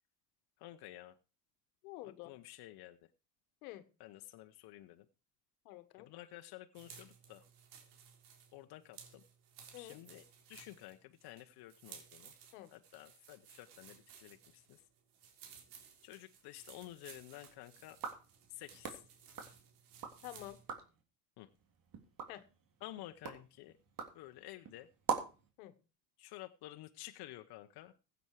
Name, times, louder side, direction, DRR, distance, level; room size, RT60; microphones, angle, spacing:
voice 1, 0.6-1.1 2.2-3.0 4.0-5.0 6.0-7.4 8.5-9.2 9.8-12.3 12.7-14.8 16.0-18.0 18.5-19.0 21.4-21.5 22.8-23.7 24.1-24.9 26.2-27.9, left 15 dB, 65° left, 1.1 m, -52 dB
voice 2, 1.8-2.3 3.6-3.8 5.6-6.1 9.7-10.0 12.5-12.7 20.2-20.6 22.3-22.4 25.6-25.7, left 15 dB, 90° left, 1.5 m, -48 dB
sound 1, 6.7-20.7, right 7 dB, 80° right, 3.8 m, -58 dB
sound 2, 17.9-20.2 20.5-21.0 21.5-25.5, right 7 dB, 55° right, 3.3 m, -44 dB
16.0 x 8.3 x 4.8 m
supercardioid pair, 85°, 41 cm